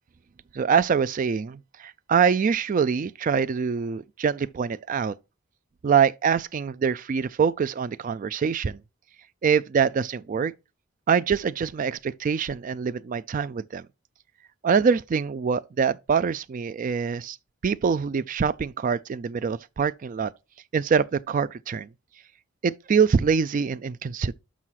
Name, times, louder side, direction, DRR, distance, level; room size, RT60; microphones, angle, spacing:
voice 1, 0.5-5.1 5.8-8.8 9.4-10.5 11.1-13.8 14.6-17.4 17.6-20.3 20.7-21.9 22.6-24.3, right 6 dB, 40° right, 0.3 m, -24 dB
6.2 x 5.7 x 5.7 m
head